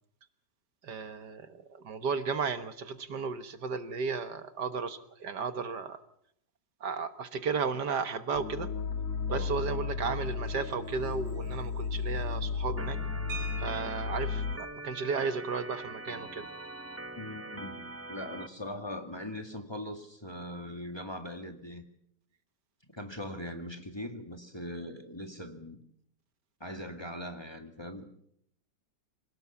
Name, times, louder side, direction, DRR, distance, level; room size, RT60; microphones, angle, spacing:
voice 1, 0.8-6.0 6.8-8.7 9.3-13.2 13.6-16.5, right 5 dB, 65° right, 10 dB, 1.9 m, -34 dB
sound 1, 8.3-14.6, left 5 dB, 45° left, 2.3 m, -34 dB
Organ, 12.8-18.5, right 2 dB, 10° right, 0.6 m, -43 dB
sound 2, 13.3-14.4 15.8-15.9 16.3-16.5 16.9-17.1, right 3 dB, 50° right, 3.5 m, -43 dB
voice 2, 17.2-17.8 18.1-21.8 22.9-25.8 26.6-28.1, left 1 dB, 15° left, 5 dB, 2.0 m, -40 dB
26.5 x 18.0 x 7.2 m, 0.70 s
omnidirectional pair, 2.0 m